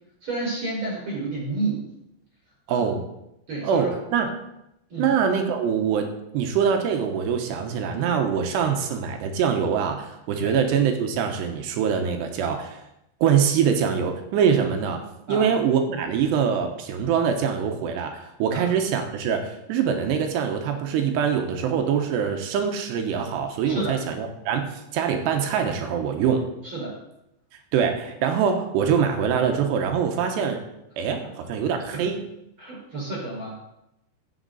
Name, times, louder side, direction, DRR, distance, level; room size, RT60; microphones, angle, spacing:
voice 1, 0.2-1.9 2.7-2.8 3.5-4.0 4.9-5.1 10.4-10.5 15.3-15.5 18.5-18.6 23.6-24.0 26.6-27.0 31.2-31.3 31.9-32.1 32.6-33.6, right 2 dB, 30° right, -3 dB, 5.6 m, -30 dB
voice 2, 2.7-3.0 3.6-4.3 5.0-6.1 6.3-12.8 13.2-15.0 15.3-26.4 27.7-30.6 31.0-32.2, right 7 dB, 75° right, 4 dB, 3.1 m, -24 dB
15.5 x 7.4 x 4.0 m, 0.84 s
omnidirectional pair, 5.0 m